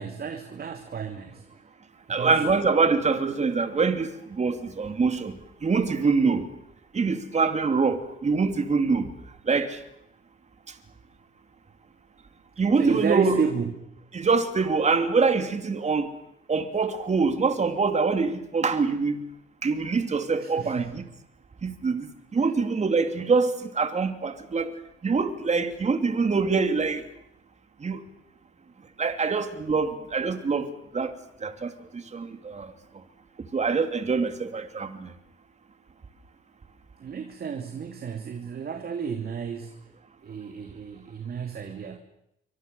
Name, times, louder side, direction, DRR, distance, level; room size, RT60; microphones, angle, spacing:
voice 1, 0.0-1.4 2.2-2.4 12.8-13.7 20.4-21.0 37.0-39.8 40.2-42.0, right 6 dB, 50° right, 2.9 m, -31 dB
voice 2, 2.1-5.3 5.6-6.5 6.9-9.1 9.5-9.8 12.6-13.4 14.1-16.1 16.5-19.2 19.6-21.0 21.6-24.7 25.0-27.0 27.8-28.0 29.0-30.7 30.9-31.1 31.4-31.7 32.1-32.7 33.5-35.1, right 4 dB, 35° right, 3.0 m, -24 dB
27.0 x 24.5 x 7.1 m
cardioid pair, 90°, 20 cm